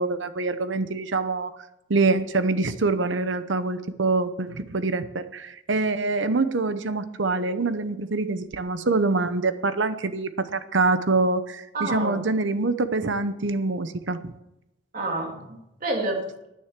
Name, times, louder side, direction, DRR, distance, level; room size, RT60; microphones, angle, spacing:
voice 1, 0.0-1.5 1.9-14.3, right 3 dB, 80° right, 12 dB, 0.9 m, -25 dB
voice 2, 11.7-12.3 14.9-16.5, right 2 dB, 45° right, 1 dB, 2.9 m, -29 dB
10.0 x 9.7 x 7.4 m, 0.88 s
head